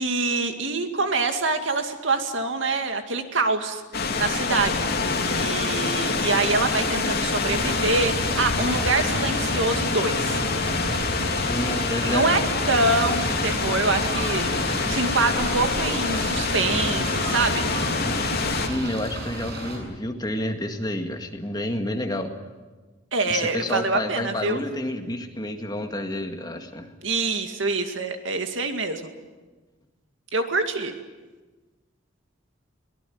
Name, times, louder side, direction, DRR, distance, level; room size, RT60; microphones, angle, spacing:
voice 1, 0.0-3.8 4.2-4.9 5.2-10.4 12.1-14.5 14.9-17.7 23.1-24.6 27.0-29.1 30.3-30.9, right 3 dB, 75° right, 6 dB, 2.3 m, -25 dB
sound 1, 3.9-18.7, left 4 dB, 55° left, 3.0 m, -26 dB
sound 2, 7.4-19.8, right 1 dB, 55° right, 7.9 m, -32 dB
voice 2, 11.5-12.4 18.7-22.3 23.2-26.9, left 1 dB, 20° left, 5 dB, 2.0 m, -29 dB
23.0 x 19.0 x 9.5 m, 1.3 s
head